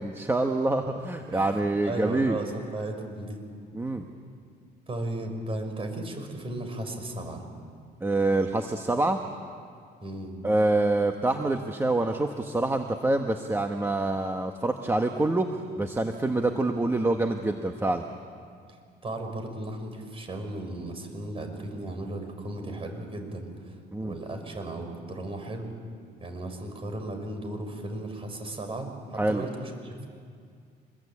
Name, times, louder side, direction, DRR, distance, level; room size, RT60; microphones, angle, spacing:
voice 1, 0.0-2.4 3.7-4.0 8.0-9.2 10.4-18.0 23.9-24.2 29.2-29.4, right 2 dB, 15° right, 4 dB, 1.3 m, -26 dB
voice 2, 1.3-3.4 4.9-7.5 10.0-10.4 18.7-25.7 26.2-30.1, right 1 dB, 35° right, 5 dB, 5.1 m, -36 dB
26.0 x 21.5 x 8.6 m, 2.2 s
cardioid pair, 110°, 17 cm